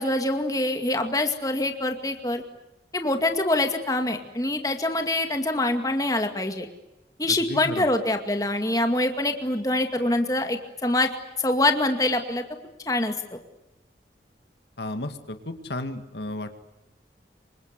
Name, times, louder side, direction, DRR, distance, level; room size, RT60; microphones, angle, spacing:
voice 1, 0.0-2.4 2.9-6.7 7.2-11.1 11.4-12.4 12.9-13.4, left 2 dB, 20° left, 6 dB, 2.2 m, -25 dB
voice 2, 7.3-7.9 14.8-16.5, left 1 dB, 75° left, 8 dB, 2.2 m, -33 dB
27.5 x 25.0 x 8.2 m, 0.92 s
head